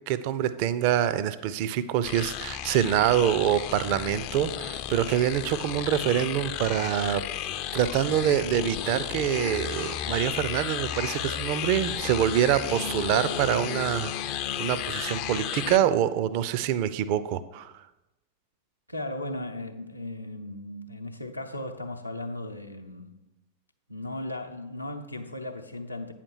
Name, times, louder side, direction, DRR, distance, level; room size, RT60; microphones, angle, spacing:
voice 1, 0.1-7.2 7.5-14.1 14.6-17.7, right 10 dB, 45° right, 0.4 m, -25 dB
sound 1, 2.0-15.8, left 11 dB, 45° left, 0.4 m, -33 dB
voice 2, 18.9-23.2 23.9-26.1, left 1 dB, 85° left, 0.6 m, -36 dB
8.7 x 5.8 x 4.6 m
figure-of-eight pair, 90°, 0 cm